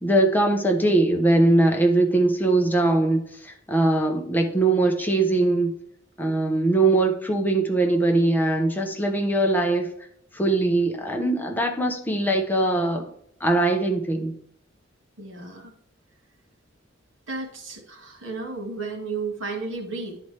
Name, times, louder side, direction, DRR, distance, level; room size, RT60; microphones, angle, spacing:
voice 1, 0.0-5.7 6.2-9.9 10.3-13.1 13.4-14.3, right 2 dB, 10° left, 2 dB, 0.9 m, -21 dB
voice 2, 15.2-15.7 17.3-20.2, right 3 dB, 80° right, 4 dB, 1.8 m, -33 dB
11.0 x 4.3 x 3.3 m, 0.69 s
head